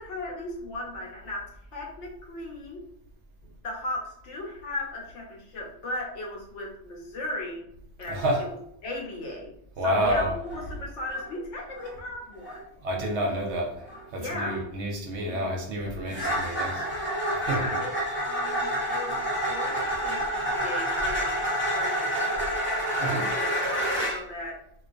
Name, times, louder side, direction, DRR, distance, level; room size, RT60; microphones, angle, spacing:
voice 1, 0.0-2.8 3.6-7.7 8.0-8.6 8.8-9.5 9.8-12.6 14.2-14.6 15.3-15.5 17.4-24.6, left 1 dB, 70° left, 0.9 m, -37 dB
voice 2, 8.1-8.5 9.8-10.6 12.8-16.8 17.4-17.8 23.0-23.3, equal, 65° right, 0.8 m, -29 dB
sound 1, 10.4-10.6 11.0-11.3 11.7-12.0 12.4-12.6 13.0-13.2 13.9-14.0 14.4-14.6 16.1-24.2, equal, 15° left, 0.4 m, -28 dB
2.4 x 2.3 x 2.4 m
omnidirectional pair, 1.4 m